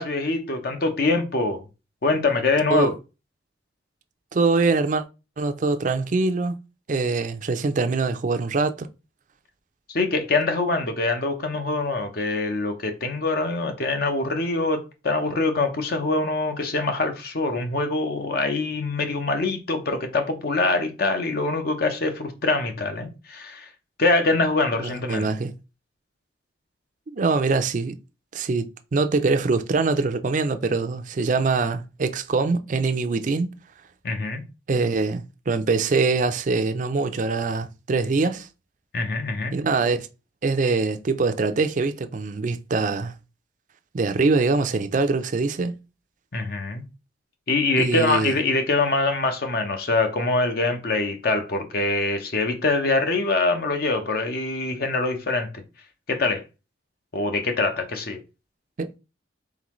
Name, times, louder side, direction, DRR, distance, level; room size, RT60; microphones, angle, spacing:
voice 1, 0.0-1.6 2.0-2.9 9.9-23.7 24.0-25.3 34.0-34.4 38.9-39.6 46.3-46.8 47.5-55.5 56.1-56.4 57.1-58.2, left 3 dB, 55° left, 0.7 m, -24 dB
voice 2, 4.3-5.0 5.4-6.5 6.9-8.9 24.8-25.5 27.1-27.9 28.3-33.5 34.7-38.5 39.5-40.1 40.4-43.1 43.9-45.7 47.8-48.3 58.8-58.9, right 3 dB, 45° right, 0.4 m, -23 dB
3.8 x 3.8 x 3.0 m
head